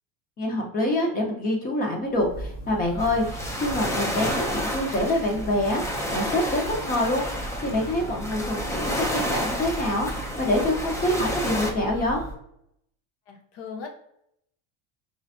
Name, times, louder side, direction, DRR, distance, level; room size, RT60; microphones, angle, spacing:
voice 1, 0.4-12.2, left 1 dB, 25° left, 1 dB, 1.2 m, -26 dB
Church bell, 2.0-12.3, right 1 dB, 55° left, 1.5 m, -38 dB
sound 1, 3.0-11.7, equal, 10° left, 0.5 m, -31 dB
voice 2, 13.3-13.9, left 5 dB, 75° left, 3 dB, 1.2 m, -38 dB
4.9 x 3.3 x 2.7 m, 0.74 s
cardioid pair, 155°, 34 cm